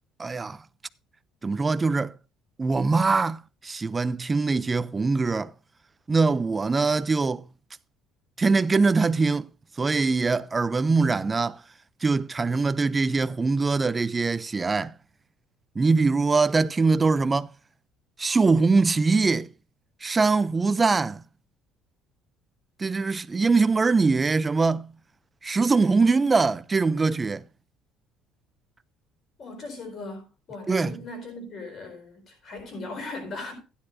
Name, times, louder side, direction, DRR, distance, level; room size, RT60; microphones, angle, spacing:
voice 1, 0.2-0.6 1.4-2.2 2.6-5.5 6.1-7.5 8.4-9.5 9.8-11.6 12.0-14.9 15.8-17.5 18.2-19.5 20.0-21.2 22.8-24.9 25.4-27.4 30.7-30.9, right 4 dB, 20° right, 0.4 m, -22 dB
voice 2, 29.4-33.5, left 2 dB, 40° left, 4.6 m, -38 dB
15.5 x 9.8 x 2.6 m
cardioid pair, 145°, 0 cm